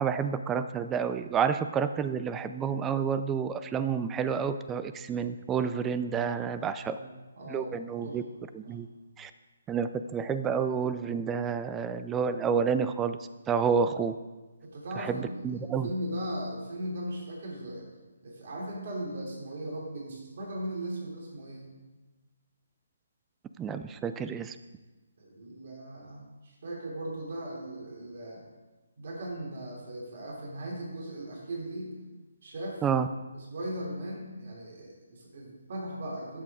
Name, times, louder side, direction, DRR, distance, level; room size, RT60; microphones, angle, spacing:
voice 1, 0.0-7.0 7.5-8.2 8.5-8.9 9.2-9.3 9.7-13.2 13.5-14.2 15.0-15.9 23.6-24.6 32.8-33.1, right 6 dB, 15° right, 11 dB, 0.4 m, -29 dB
voice 2, 6.9-8.2 8.6-8.8 14.6-17.9 18.2-21.7 25.2-28.4 29.0-31.9 32.4-32.8 33.3-36.4, right 1 dB, 55° right, -3 dB, 3.1 m, -38 dB
13.0 x 7.5 x 3.7 m, 1.2 s
figure-of-eight pair, 150°, 0 cm